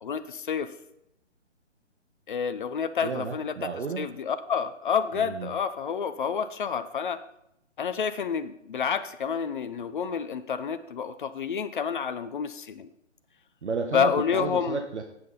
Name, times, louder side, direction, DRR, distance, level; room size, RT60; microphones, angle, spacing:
voice 1, 0.0-0.7 2.3-3.5 4.0-7.2 7.8-12.9 13.9-14.9, left 7 dB, 40° left, 11 dB, 0.9 m, -29 dB
voice 2, 3.0-4.1 5.1-5.5 13.6-15.0, right 5 dB, 65° right, 4 dB, 1.4 m, -32 dB
16.0 x 7.8 x 4.1 m, 0.80 s
figure-of-eight pair, 145°, 37 cm